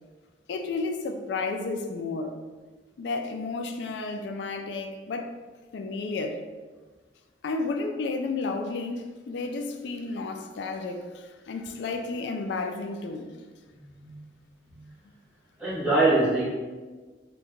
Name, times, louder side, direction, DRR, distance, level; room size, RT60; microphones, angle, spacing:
voice 1, 0.5-2.4 3.0-5.3 5.7-6.4 7.4-13.4, left 3 dB, 75° left, 0.3 m, -32 dB
voice 2, 15.6-16.5, right 2 dB, 5° right, 1.0 m, -23 dB
2.7 x 2.2 x 3.6 m
head